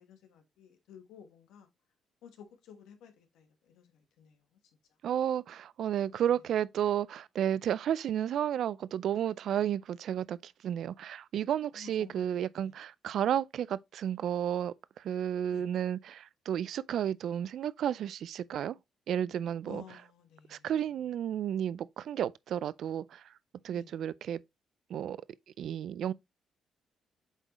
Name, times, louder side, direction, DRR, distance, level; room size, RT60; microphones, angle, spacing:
voice 1, 0.0-1.7 2.2-4.6 5.0-5.1 6.0-6.3 11.7-12.8 15.5-15.7 19.6-20.7 23.7-24.0, left 8 dB, 90° left, 1.4 m, -54 dB
voice 2, 5.0-18.8 19.1-19.8 20.5-23.2 23.6-24.4 24.9-25.2 25.6-26.1, right 10 dB, 70° right, 0.4 m, -32 dB
8.1 x 3.9 x 3.0 m
cardioid pair, 90°, 0 cm